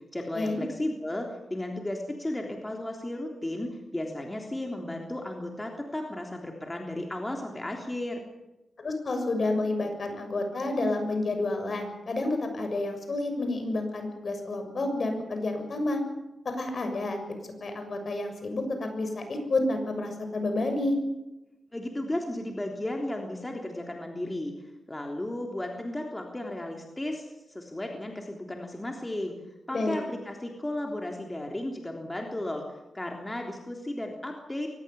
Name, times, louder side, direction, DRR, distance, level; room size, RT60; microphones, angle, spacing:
voice 1, 0.1-8.3 21.7-24.5 24.9-29.3 29.7-32.6 32.9-34.7, left 1 dB, 15° left, 1 dB, 3.5 m, -34 dB
voice 2, 8.8-16.0 16.4-17.2 17.6-21.0 29.7-30.0, left 2 dB, 50° left, 6 dB, 6.7 m, -29 dB
23.5 x 20.0 x 7.2 m, 0.97 s
wide cardioid pair, 95°, 0 cm